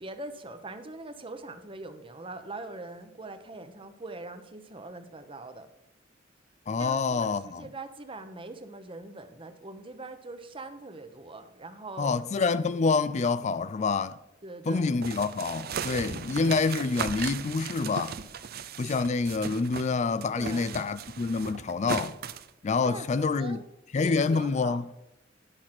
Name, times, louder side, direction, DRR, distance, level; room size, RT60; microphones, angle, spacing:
voice 1, 0.0-5.7 6.8-12.7 13.4-13.6 14.4-14.9 16.4-16.6 20.4-20.7 22.8-23.7 24.0-24.8, right 2 dB, 25° right, 0.9 m, -42 dB
voice 2, 6.7-7.6 12.0-14.2 14.7-18.2 18.8-22.2 22.6-23.6 23.9-24.8, left 4 dB, 35° left, 0.3 m, -27 dB
sound 1, 15.0-19.9 20.2-22.5, right 6 dB, 50° right, 0.5 m, -37 dB
11.0 x 6.1 x 5.8 m
head